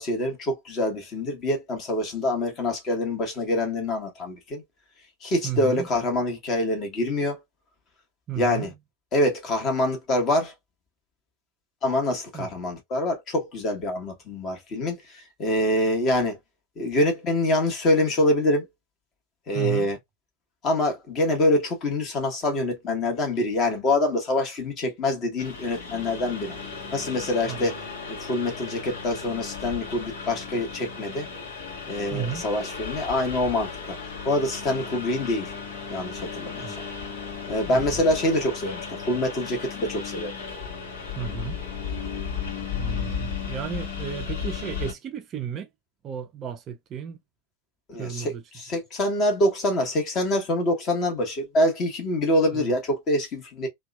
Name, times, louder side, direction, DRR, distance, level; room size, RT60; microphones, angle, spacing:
voice 1, 0.0-4.6 5.2-7.4 8.3-8.7 9.1-10.5 11.8-16.4 16.8-18.7 19.5-20.0 20.6-26.5 26.9-27.8 28.1-31.3 31.9-34.0 34.2-35.5 35.9-36.8 37.5-40.3 47.9-53.7, left 1 dB, 30° left, 1.1 m, -25 dB
voice 2, 5.4-5.9 8.3-8.7 12.3-12.5 19.5-19.9 27.5-27.7 32.1-32.5 36.6-36.8 37.7-37.8 41.2-41.6 42.7-45.7 46.0-47.2 48.0-48.4 52.5-52.7, right 8 dB, 30° right, 0.3 m, -33 dB
Engine, 25.4-44.9, left 6 dB, 60° left, 1.0 m, -35 dB
2.8 x 2.1 x 2.3 m
figure-of-eight pair, 90°, 0 cm